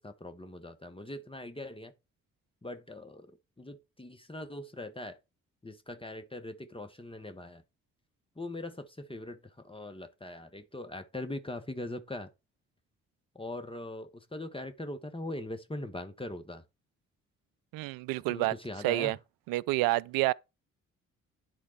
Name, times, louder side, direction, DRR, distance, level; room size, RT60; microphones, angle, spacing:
voice 1, 0.0-1.9 2.6-5.2 5.6-7.6 8.4-12.3 13.3-16.6 18.3-19.2, left 1 dB, 15° left, 1.4 m, -41 dB
voice 2, 17.7-18.5 18.8-19.2 19.5-20.3, right 18 dB, 60° right, 0.5 m, -28 dB
10.5 x 4.1 x 4.5 m
figure-of-eight pair, 40°, 40 cm